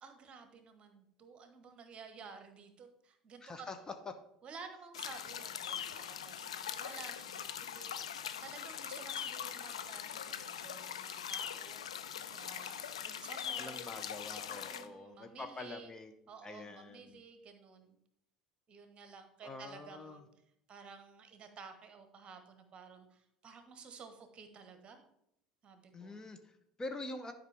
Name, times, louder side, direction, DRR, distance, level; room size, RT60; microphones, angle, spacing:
voice 1, 0.0-3.7 4.4-8.1 8.4-13.9 14.5-15.9 16.3-18.0 18.7-20.2 20.7-25.0 25.6-26.2, right 5 dB, 35° right, 7 dB, 1.2 m, -53 dB
voice 2, 3.4-3.8 13.6-16.1 16.4-17.2 19.4-20.2 25.9-27.3, left 2 dB, 20° left, 7 dB, 0.7 m, -46 dB
sound 1, 4.9-14.9, left 8 dB, 75° left, 0.5 m, -42 dB
11.0 x 5.1 x 3.4 m, 0.77 s
figure-of-eight pair, 65°, 3 cm